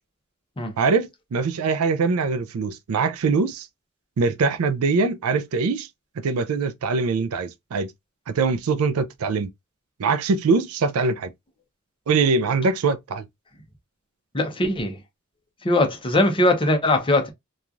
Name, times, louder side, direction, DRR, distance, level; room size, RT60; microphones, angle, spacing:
voice 1, 0.8-3.7 4.2-5.9 6.2-7.9 8.3-9.5 10.0-11.3 12.1-13.2, right 4 dB, 75° right, 0.4 m, -23 dB
voice 2, 14.3-15.0 15.6-17.3, left 1 dB, 25° left, 0.7 m, -20 dB
3.0 x 2.3 x 2.4 m
head